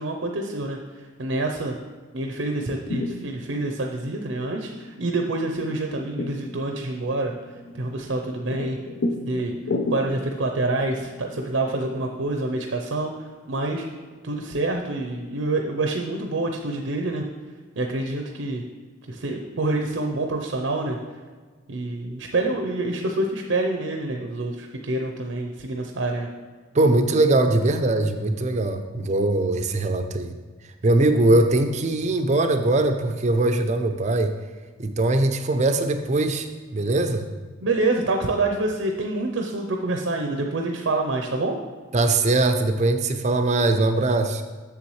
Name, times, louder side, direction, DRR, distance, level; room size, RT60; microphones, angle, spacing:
voice 1, 0.0-1.8 2.1-7.3 7.7-8.8 9.2-9.5 9.9-13.9 14.2-17.2 17.8-18.6 19.1-21.0 21.7-26.3 37.6-41.6, right 2 dB, 75° right, 2 dB, 0.6 m, -27 dB
Wheelbarrow Trundling, 2.6-12.2, left 2 dB, 65° left, 0.6 m, -34 dB
voice 2, 26.7-30.4 30.8-34.4 34.8-37.3 41.9-44.4, right 2 dB, 35° right, 7 dB, 0.5 m, -21 dB
7.0 x 6.9 x 3.2 m, 1.5 s
head